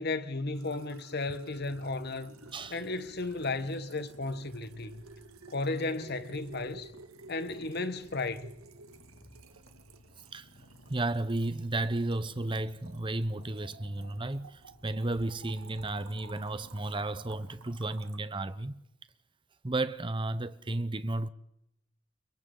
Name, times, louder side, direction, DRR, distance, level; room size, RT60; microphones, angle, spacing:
voice 1, 0.0-2.3 2.7-5.0 5.5-6.9 7.3-8.7, left 3 dB, 50° left, 1.2 m, -34 dB
sound 1, 0.5-18.2, right 3 dB, 85° right, 1.6 m, -53 dB
Purr, 1.5-17.7, left 1 dB, 65° left, 2.7 m, -58 dB
voice 2, 10.9-18.8 19.6-21.3, right 2 dB, 25° right, 0.7 m, -33 dB
30.0 x 23.5 x 3.9 m
head